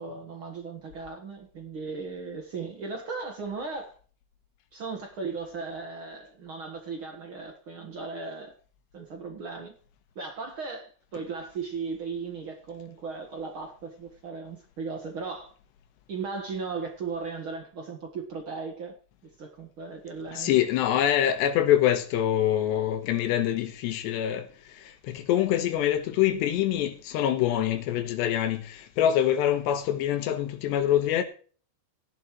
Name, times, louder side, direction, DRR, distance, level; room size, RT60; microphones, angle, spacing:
voice 1, 0.0-3.9 4.7-8.5 8.9-9.7 10.1-15.5 16.1-18.9 19.4-20.6, right 4 dB, 65° right, 1.3 m, -37 dB
voice 2, 20.3-31.2, left 11 dB, 85° left, 3.4 m, -25 dB
16.5 x 11.0 x 3.1 m
omnidirectional pair, 4.8 m